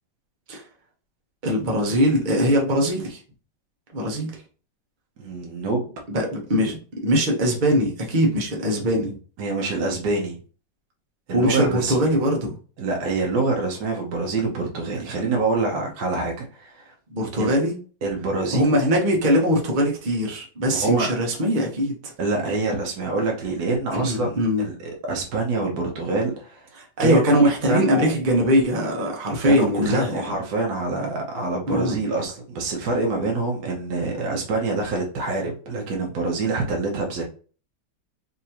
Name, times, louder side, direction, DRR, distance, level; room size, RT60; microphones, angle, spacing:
voice 1, 1.4-3.2 3.9-4.4 6.1-9.2 11.3-12.6 17.1-17.7 18.5-22.1 23.9-24.7 26.7-30.2 31.7-32.0, equal, 35° right, 0 dB, 0.9 m, -21 dB
voice 2, 5.2-5.9 9.4-10.4 11.3-11.9 12.8-16.9 17.4-17.5 18.0-18.9 20.7-21.1 22.2-26.7 27.0-28.1 29.4-37.2, right 3 dB, 65° right, 0 dB, 1.4 m, -26 dB
4.1 x 2.9 x 2.8 m, 0.39 s
omnidirectional pair, 2.0 m